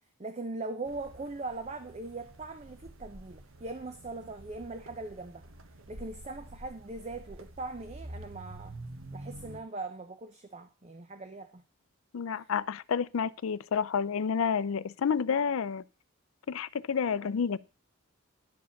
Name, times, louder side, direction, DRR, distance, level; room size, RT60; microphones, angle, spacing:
voice 1, 0.2-5.4 5.9-8.7 9.1-11.6 12.3-12.5, right 3 dB, 30° right, 0.6 m, -40 dB
sound 1, 0.9-9.6, right 1 dB, 75° right, 1.1 m, -48 dB
voice 2, 12.1-15.8 16.5-17.6, left 6 dB, 75° left, 0.4 m, -29 dB
11.0 x 5.1 x 7.0 m
head